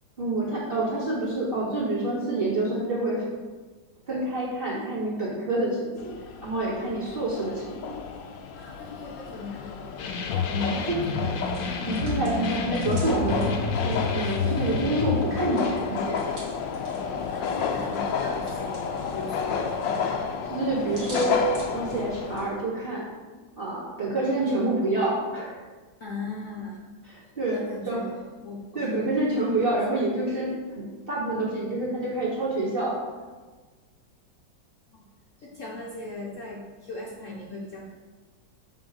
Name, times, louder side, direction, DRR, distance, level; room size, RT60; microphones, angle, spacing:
voice 1, 0.2-3.2 4.1-6.1 6.4-8.0 10.6-10.8 11.9-13.5 13.8-16.2 20.5-21.4 21.7-23.1 23.6-25.6 27.1-27.6 27.9-28.0 28.7-33.0, right 2 dB, 30° right, -7 dB, 2.6 m, -27 dB
sound 1, 6.0-22.5, left 6 dB, 90° left, 1.4 m, -32 dB
voice 2, 8.5-10.1 10.5-11.5 13.2-13.7 14.4-14.5 17.0-20.2 26.0-26.8 27.5-28.2 28.4-28.9 29.6-30.0 34.9-35.0 35.4-37.9, left 2 dB, 50° left, -3 dB, 1.2 m, -38 dB
sound 2, 10.0-15.2, left 5 dB, 70° left, 1.3 m, -29 dB
Hands, 11.3-14.9 15.2-22.5, right 1 dB, 50° right, 2.5 m, -47 dB
8.0 x 4.1 x 6.3 m, 1.3 s
omnidirectional pair, 2.0 m